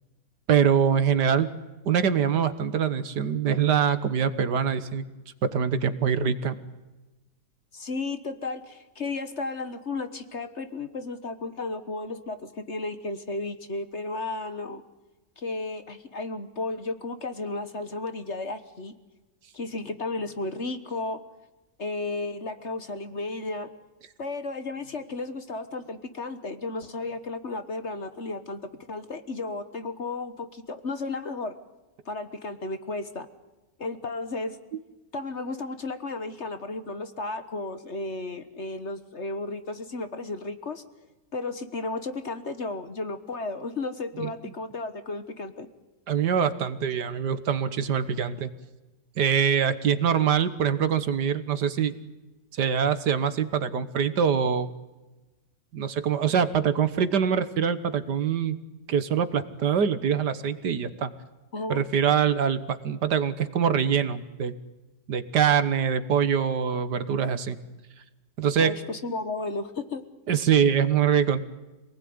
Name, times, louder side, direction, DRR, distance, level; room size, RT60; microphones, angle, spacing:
voice 1, 0.5-1.5 1.9-5.1 5.5-6.6 44.2-44.3 46.1-48.5 49.2-51.9 52.5-54.7 55.7-58.6 58.9-61.1 61.7-64.5 65.1-67.6 68.4-68.7 70.3-71.4, right 7 dB, 70° right, 12 dB, 1.8 m, -24 dB
voice 2, 7.7-14.8 15.4-18.9 19.5-21.2 21.8-23.7 24.2-31.5 32.0-33.3 33.8-34.6 35.1-40.8 41.3-45.7 61.5-61.8 68.6-70.0, left 3 dB, 40° left, 10 dB, 1.5 m, -33 dB
27.0 x 19.0 x 9.6 m, 1.1 s
omnidirectional pair, 1.9 m